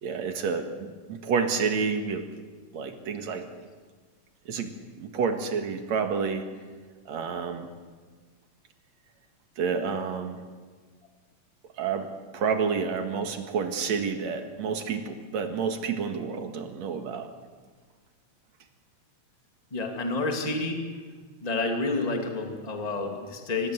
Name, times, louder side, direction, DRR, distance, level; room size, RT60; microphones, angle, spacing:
voice 1, 0.0-2.3 2.7-3.5 4.5-4.7 5.0-6.5 7.1-7.7 9.6-10.4 11.8-17.3, right 5 dB, 70° right, 6 dB, 3.0 m, -29 dB
voice 2, 19.7-20.8 21.4-23.7, left 3 dB, 15° left, 3 dB, 2.3 m, -29 dB
25.0 x 19.0 x 8.1 m, 1.5 s
omnidirectional pair, 3.3 m